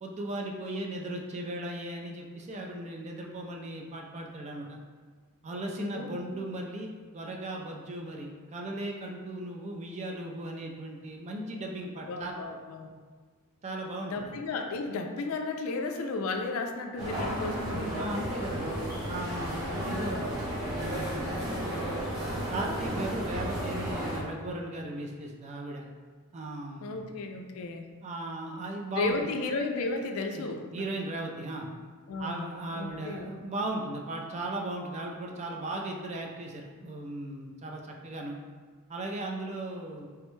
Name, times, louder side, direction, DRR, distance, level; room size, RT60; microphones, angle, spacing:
voice 1, 0.0-4.8 5.4-12.4 13.6-14.3 17.2-17.5 17.9-18.7 19.1-20.3 20.6-21.3 22.2-25.9 26.3-27.0 28.0-29.3 30.4-31.7 32.2-38.4 38.9-40.1, right 1 dB, 30° right, 1 dB, 0.3 m, -37 dB
voice 2, 5.8-6.2 12.1-12.9 14.1-18.0 19.6-20.1 26.8-27.9 29.0-30.9 32.1-32.5 32.7-33.3, left 3 dB, 65° left, 4 dB, 0.3 m, -34 dB
sound 1, 17.0-24.2, equal, 15° right, 0.8 m, -33 dB
3.4 x 2.1 x 3.0 m, 1.5 s
head